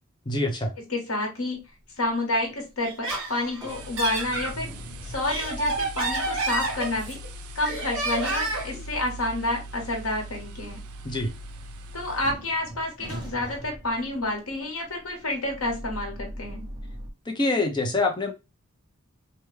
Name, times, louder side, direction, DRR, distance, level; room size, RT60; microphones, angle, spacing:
voice 1, 0.3-0.7 11.0-11.3 17.3-18.3, left 2 dB, 20° left, 0.5 m, -25 dB
voice 2, 0.9-1.6 2.0-4.7 5.0-7.2 7.5-10.8 11.9-16.7, left 2 dB, 80° left, 1.1 m, -29 dB
sound 1, 1.6-2.1 2.5-17.1, right 1 dB, 20° right, 0.7 m, -43 dB
Laughter, 2.8-4.5 5.1-7.3 7.6-8.8, right 3 dB, 60° right, 1.5 m, -29 dB
sound 2, 3.7-12.3, equal, 85° right, 0.4 m, -41 dB
3.3 x 2.2 x 3.2 m
head